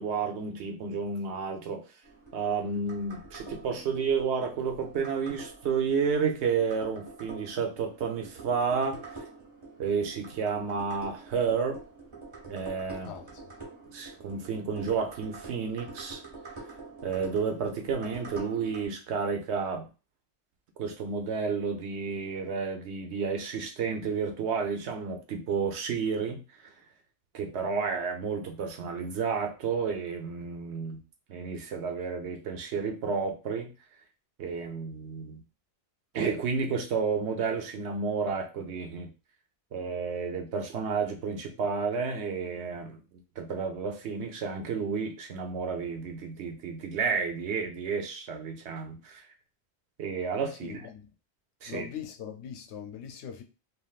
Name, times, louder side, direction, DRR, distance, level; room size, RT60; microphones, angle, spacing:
voice 1, 0.0-1.8 2.3-9.2 9.8-11.8 12.5-13.1 13.9-16.2 17.0-19.9 20.8-26.7 27.3-31.0 31.3-33.7 34.4-35.4 36.1-39.1 39.7-49.3 50.0-50.9 51.6-51.9, right 5 dB, 80° right, 1.0 m, -31 dB
sound 1, 2.0-18.9, right 3 dB, 30° right, 1.1 m, -46 dB
voice 2, 13.0-13.4 50.6-51.1 51.6-53.4, left 8 dB, 85° left, 0.9 m, -41 dB
3.4 x 2.5 x 2.4 m
omnidirectional pair, 1.1 m